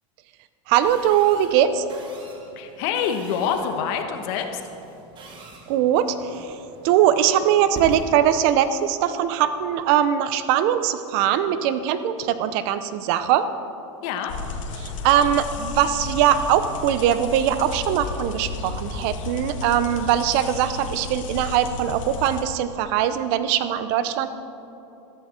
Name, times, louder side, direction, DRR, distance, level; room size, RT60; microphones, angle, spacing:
voice 1, 0.7-1.8 5.7-6.6 6.8-13.5 14.8-24.3, right 10 dB, 55° right, 12 dB, 0.8 m, -21 dB
sound 1, 0.8-9.9, right 1 dB, 30° right, 1.9 m, -44 dB
voice 2, 2.6-4.6 14.0-14.3, left 7 dB, 55° left, 6 dB, 1.4 m, -26 dB
sound 2, 14.3-22.4, left 3 dB, 80° left, 1.9 m, -33 dB
14.0 x 13.5 x 4.5 m, 2.9 s
supercardioid pair, 135°, 16 cm